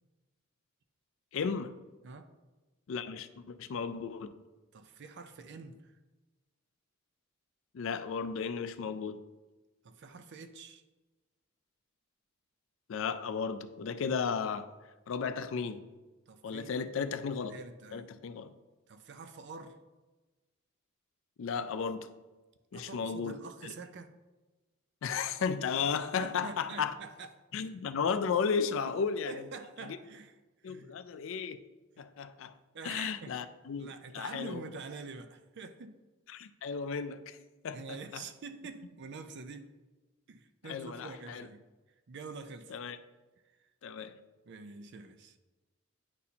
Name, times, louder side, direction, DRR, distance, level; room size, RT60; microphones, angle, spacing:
voice 1, 1.3-1.7 2.9-4.3 7.7-9.2 12.9-14.7 15.1-15.9 16.4-17.6 17.9-18.5 21.4-22.1 22.7-23.4 23.6-23.7 25.0-26.9 27.5-29.4 30.6-31.6 32.0-32.5 32.8-34.7 36.3-37.4 37.6-38.2 40.6-41.5 42.7-43.0 43.8-44.2, left 6 dB, 65° left, 0.4 m, -34 dB
voice 2, 4.7-5.9 9.8-10.8 16.3-16.8 17.5-18.1 18.9-19.8 22.7-24.1 26.2-27.3 28.8-28.9 29.3-30.4 30.6-30.9 32.0-32.1 32.7-33.4 33.8-36.0 37.7-39.7 40.3-41.6 42.1-42.8 43.6-43.7 44.5-45.4, right 4 dB, 55° right, 0.5 m, -46 dB
9.6 x 4.2 x 2.8 m
head